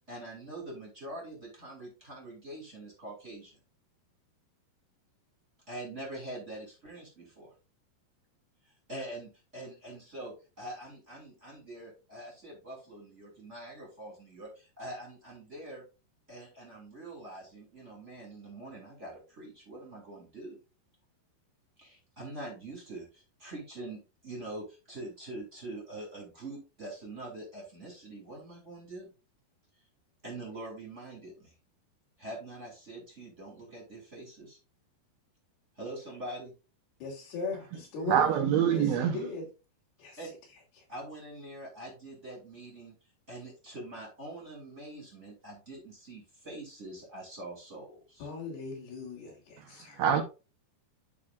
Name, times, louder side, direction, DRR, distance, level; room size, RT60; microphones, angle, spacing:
voice 1, 0.1-3.6 5.7-7.5 8.9-15.8 16.3-20.6 21.8-29.1 30.2-31.5 32.2-34.6 35.8-36.5 40.2-40.3 40.9-42.9 43.3-48.3, right 1 dB, 20° right, 2.1 m, -44 dB
voice 2, 37.0-39.5 40.0-40.2 40.8-40.9 48.2-50.1, left 3 dB, 65° left, 4.5 m, -38 dB
voice 3, 38.1-39.2 50.0-50.2, right 9 dB, 75° right, 2.5 m, -25 dB
12.5 x 4.3 x 2.4 m
omnidirectional pair, 4.9 m